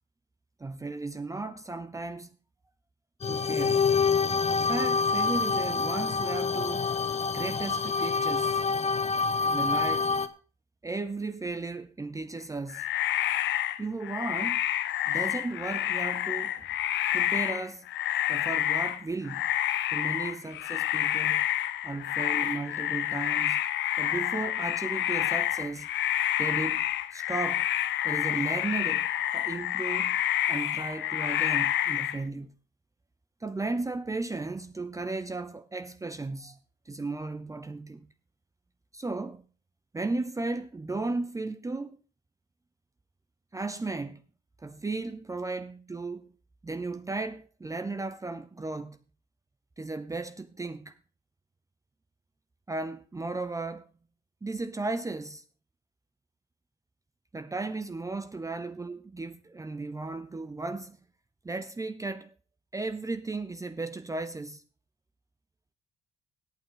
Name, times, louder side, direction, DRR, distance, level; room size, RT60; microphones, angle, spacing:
voice 1, 0.6-2.3 3.3-3.9 4.5-7.0 7.3-8.6 9.5-10.1 10.8-12.9 13.8-14.6 15.1-16.7 17.1-17.9 18.3-19.5 19.9-21.5 21.8-23.6 24.0-25.9 26.4-26.9 27.1-27.7 28.0-30.2 30.5-32.5 33.4-36.6 36.9-38.1 38.9-39.4 39.9-42.0 43.5-44.2 44.6-46.3 46.6-49.0 49.8-51.0 52.7-53.9 54.4-55.4 57.3-61.0 61.4-62.3 62.7-64.6, right 3 dB, 15° right, 0.7 m, -35 dB
sound 1, 3.2-10.3, left 5 dB, 35° left, 1.1 m, -27 dB
sound 2, 12.7-32.2, left 12 dB, 75° left, 0.8 m, -29 dB
17.0 x 8.8 x 3.9 m
cardioid pair, 90°, 19 cm